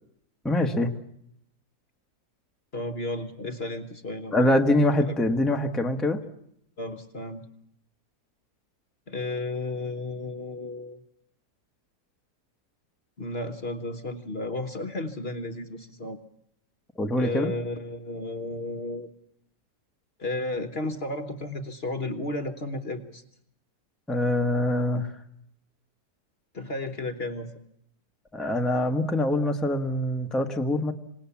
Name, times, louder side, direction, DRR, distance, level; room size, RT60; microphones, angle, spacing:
voice 1, 0.4-0.9 4.3-6.2 17.0-17.5 24.1-25.1 28.3-30.9, left 1 dB, ahead, 4 dB, 1.1 m, -24 dB
voice 2, 2.7-5.1 6.8-7.5 9.1-11.0 13.2-16.2 17.2-19.1 20.2-23.2 26.5-27.5, left 2 dB, 40° left, 8 dB, 1.3 m, -33 dB
26.5 x 19.0 x 7.2 m, 0.75 s
omnidirectional pair, 1.7 m